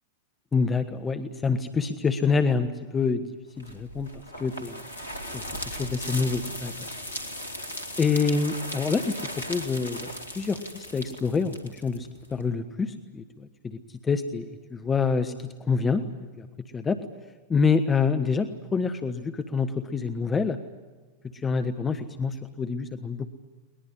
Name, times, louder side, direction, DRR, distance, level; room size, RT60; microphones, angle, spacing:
voice 1, 0.5-3.2 3.6-4.1 4.4-4.8 5.3-6.7 8.0-10.1 10.3-13.8 14.0-16.0 16.4-16.5 16.7-17.0 17.5-20.6 21.4-23.3, left 5 dB, 15° left, 9 dB, 1.3 m, -27 dB
sound 1, 3.6-12.4, left 1 dB, 75° left, 2.6 m, -37 dB
22.0 x 20.5 x 9.8 m, 1.3 s
figure-of-eight pair, 90°, 0 cm